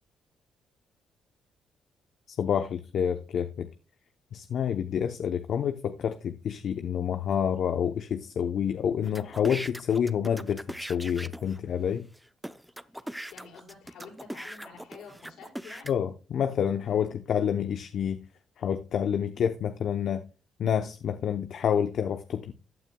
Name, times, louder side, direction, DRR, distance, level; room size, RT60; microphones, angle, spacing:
voice 1, 2.4-3.7 4.3-10.6 10.9-12.1 15.9-18.2 18.6-20.2 20.6-22.5, left 8 dB, 65° left, 0.7 m, -28 dB
sound 1, 9.0-11.6 12.1-12.2 12.4-15.9, equal, 5° right, 0.6 m, -40 dB
voice 2, 12.9-16.0, left 5 dB, 80° left, 5.3 m, -49 dB
14.5 x 9.1 x 2.3 m
cardioid pair, 90°, 0 cm